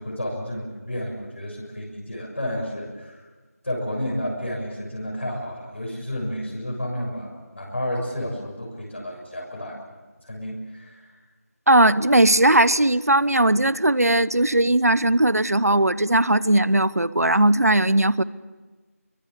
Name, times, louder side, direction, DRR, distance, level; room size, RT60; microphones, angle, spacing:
voice 1, 0.0-3.2 3.6-9.8 10.2-11.2, equal, 50° left, -2 dB, 7.0 m, -31 dB
voice 2, 11.7-18.2, right 1 dB, 75° right, 19 dB, 1.0 m, -18 dB
26.5 x 23.5 x 7.3 m, 1.3 s
figure-of-eight pair, 170°, 8 cm